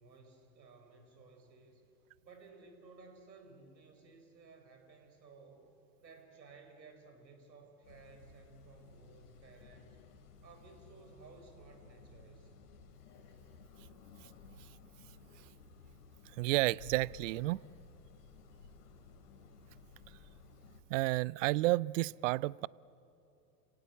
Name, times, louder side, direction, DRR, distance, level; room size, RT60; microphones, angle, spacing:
voice 1, 0.0-1.8 2.2-5.7 6.0-10.0 10.4-12.5, right 4 dB, 90° right, 4.9 m, -57 dB
sound 1, 7.8-20.8, left 4 dB, 65° left, 3.1 m, -57 dB
voice 2, 16.4-17.6 20.9-22.7, right 19 dB, 50° right, 0.5 m, -31 dB
30.0 x 17.5 x 8.3 m
hypercardioid pair, 110°, 50 cm